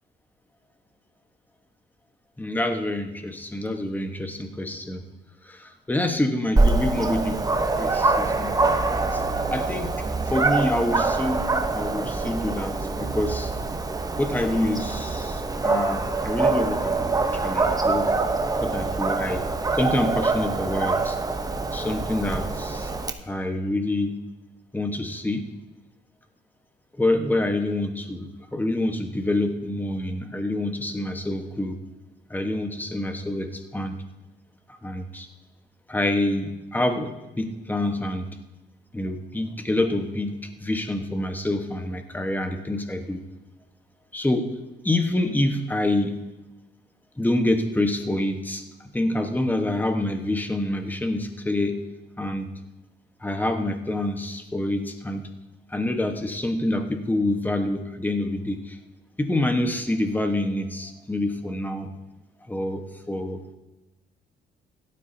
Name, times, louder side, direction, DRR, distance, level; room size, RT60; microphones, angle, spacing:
voice 1, 2.4-5.0 5.5-7.4 7.7-9.2 9.5-9.9 10.3-11.4 11.7-13.5 14.2-17.1 17.4-18.1 18.6-19.4 19.8-21.2 21.7-22.9 23.3-24.2 24.7-25.5 27.0-31.8 32.3-34.0 34.8-35.3 35.9-38.3 38.9-40.4 40.6-43.2 44.1-44.5 44.8-46.2 47.2-48.6 48.9-51.8 52.2-52.5 53.2-55.3 55.7-58.8 59.2-61.9 62.5-63.4, left 1 dB, 10° left, 6 dB, 1.2 m, -27 dB
Dog, 6.6-23.1, right 3 dB, 20° right, 0.8 m, -25 dB
17.0 x 12.0 x 2.7 m, 1.0 s
cardioid pair, 90°, 20 cm